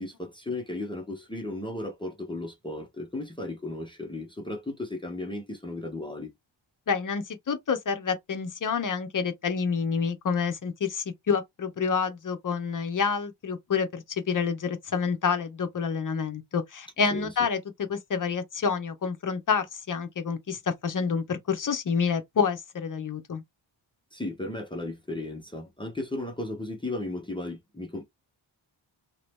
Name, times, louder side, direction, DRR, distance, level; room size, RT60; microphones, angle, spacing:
voice 1, 0.0-6.3 17.1-17.3 24.1-28.0, left 2 dB, 10° left, 0.8 m, -35 dB
voice 2, 6.9-17.6 17.9-23.4, left 6 dB, 40° left, 0.7 m, -28 dB
3.0 x 2.8 x 3.4 m
wide cardioid pair, 160°, 46 cm